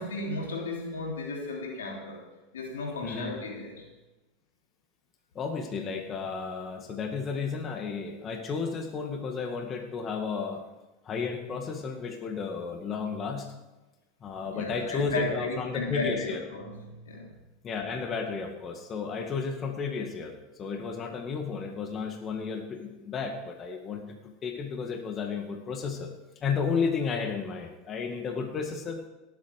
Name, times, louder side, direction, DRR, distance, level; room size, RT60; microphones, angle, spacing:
voice 1, 0.0-2.2 2.5-3.8 14.5-17.4, left 3 dB, 90° left, 0 dB, 3.3 m, -34 dB
voice 2, 3.0-3.3 5.4-10.6 11.0-13.5 14.2-16.4 17.6-26.1 26.4-29.0, left 5 dB, 35° left, 4 dB, 2.0 m, -33 dB
18.0 x 8.7 x 4.9 m, 1.1 s
hypercardioid pair, 95°, 0 cm